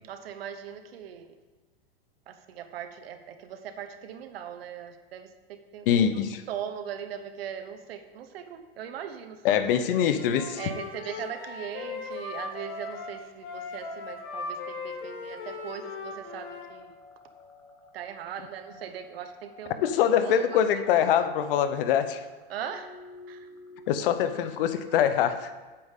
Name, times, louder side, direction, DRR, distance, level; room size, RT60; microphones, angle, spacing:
voice 1, 0.0-1.3 2.3-9.7 10.5-17.0 17.9-21.1 22.5-22.9 23.3-23.5, right 8 dB, 85° right, 8 dB, 1.0 m, -40 dB
voice 2, 5.9-6.4 9.4-10.6 19.8-22.2 23.9-25.5, left 9 dB, 65° left, 11 dB, 0.8 m, -24 dB
Wind instrument woodwind instrument, 10.1-16.7, left 4 dB, 50° left, 1.5 m, -38 dB
sound 1, 14.9-24.7, left 2 dB, 15° left, 0.9 m, -50 dB
8.5 x 8.2 x 3.7 m, 1.3 s
supercardioid pair, 145°, 29 cm